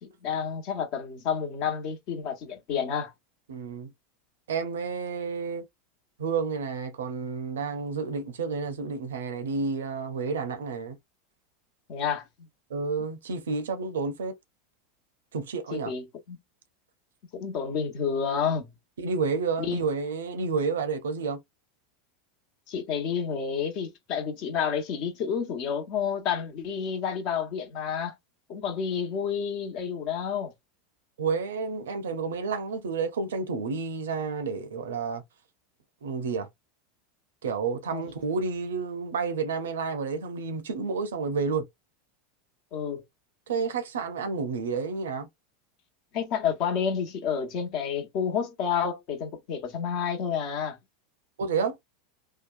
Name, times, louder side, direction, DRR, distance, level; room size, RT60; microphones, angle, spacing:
voice 1, 0.0-3.1 11.9-12.5 15.7-16.4 17.3-18.7 19.6-19.8 22.7-28.1 28.5-30.5 37.9-38.1 42.7-43.0 46.1-50.8, left 7 dB, 50° left, 1.0 m, -30 dB
voice 2, 3.5-3.9 4.5-5.6 6.2-11.0 12.7-14.3 15.3-15.9 19.0-21.4 31.2-35.2 36.0-36.5 37.4-41.6 43.5-45.3 51.4-51.8, right 5 dB, 75° right, 0.6 m, -30 dB
2.8 x 2.2 x 2.4 m
hypercardioid pair, 85°, 0 cm